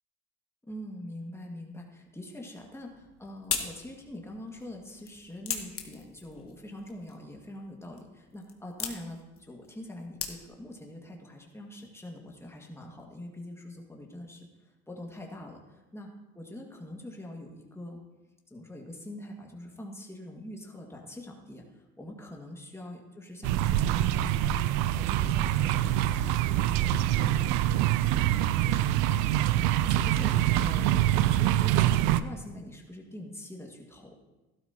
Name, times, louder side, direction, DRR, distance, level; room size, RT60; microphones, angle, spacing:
voice 1, 0.7-14.5 14.9-16.1 16.4-18.0 18.5-24.5 24.9-27.5 27.9-28.0 28.4-34.1, left 1 dB, 10° left, 0 dB, 2.0 m, -44 dB
sound 1, 2.8-10.8, left 6 dB, 45° left, 1.4 m, -40 dB
sound 2, 23.4-32.2, right 13 dB, 80° right, 0.5 m, -25 dB
12.5 x 12.0 x 2.9 m, 1.1 s
supercardioid pair, 75°, 32 cm